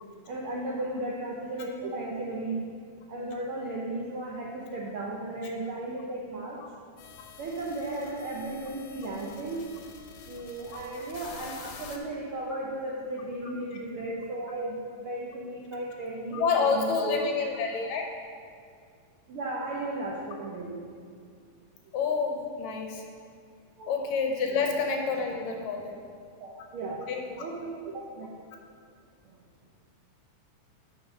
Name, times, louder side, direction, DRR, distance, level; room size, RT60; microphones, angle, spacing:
voice 1, 0.3-2.6 3.1-6.6 7.4-9.6 10.3-17.2 19.3-20.8 23.8-23.9 24.5-24.7 26.4-27.0 27.4-28.3 29.2-29.3, right 2 dB, 75° right, -4 dB, 1.2 m, -35 dB
sound 1, 7.0-12.0, left 6 dB, 90° left, 2.2 m, -48 dB
voice 2, 16.3-18.0 21.9-23.0 23.9-26.0 27.1-27.2, left 5 dB, 75° left, 3 dB, 2.0 m, -28 dB
7.9 x 5.4 x 5.5 m, 2.2 s
omnidirectional pair, 3.4 m